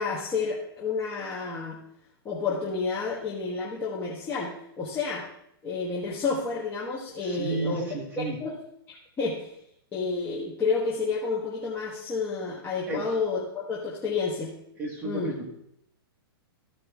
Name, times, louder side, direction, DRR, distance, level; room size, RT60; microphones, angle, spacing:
voice 1, 0.0-1.8 2.2-5.2 5.6-8.5 8.9-9.5 9.9-14.5 15.0-15.3, left 4 dB, 15° left, -5 dB, 1.3 m, -30 dB
voice 2, 7.2-8.4 12.9-13.0 14.8-15.5, right 2 dB, 15° right, -1 dB, 1.5 m, -32 dB
14.0 x 4.9 x 3.6 m, 0.75 s
hypercardioid pair, 150°, 13 cm